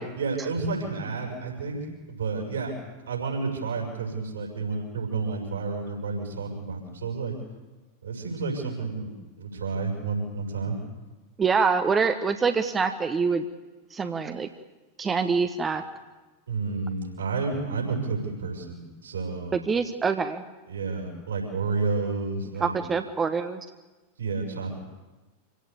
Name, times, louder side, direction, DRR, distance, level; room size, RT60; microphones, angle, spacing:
voice 1, 0.0-2.8 3.1-7.3 8.0-10.8 16.5-19.6 20.7-22.8 24.2-24.8, right 4 dB, 70° right, 1 dB, 6.4 m, -30 dB
voice 2, 11.4-13.4 13.9-14.5 15.0-15.8 19.5-20.4 22.6-23.6, right 5 dB, 20° right, 7 dB, 1.3 m, -25 dB
26.5 x 17.0 x 8.5 m, 1.2 s
figure-of-eight pair, 90°, 0 cm